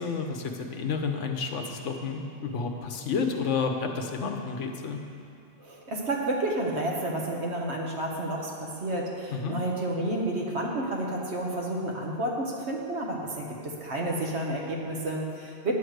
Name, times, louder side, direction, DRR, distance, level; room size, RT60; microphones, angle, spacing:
voice 1, 0.0-5.0 9.3-9.5, left 5 dB, 90° left, 4 dB, 1.2 m, -30 dB
voice 2, 5.6-15.7, right 1 dB, 65° right, -1 dB, 1.5 m, -30 dB
10.0 x 4.9 x 7.8 m, 2.5 s
omnidirectional pair, 1.2 m